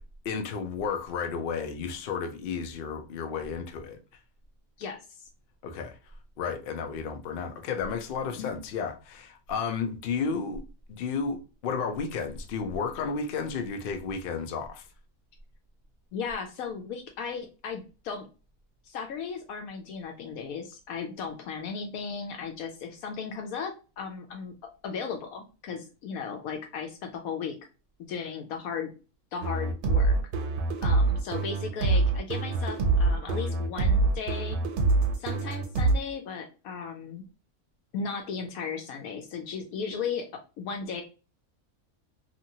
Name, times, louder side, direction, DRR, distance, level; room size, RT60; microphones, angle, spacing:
voice 1, 0.2-4.0 5.6-6.0 6.4-10.6 10.9-11.4 11.6-14.8, left 5 dB, 90° left, 0.4 m, -32 dB
voice 2, 4.8-5.3 8.3-8.5 16.1-18.3 18.8-27.6 28.1-28.9 29.3-30.2 30.8-34.6 35.2-37.2 37.9-40.3 40.6-41.0, left 6 dB, 75° left, 1.0 m, -36 dB
sound 1, 29.4-36.0, right 3 dB, 85° right, 1.1 m, -25 dB
2.9 x 2.5 x 2.7 m
omnidirectional pair, 1.6 m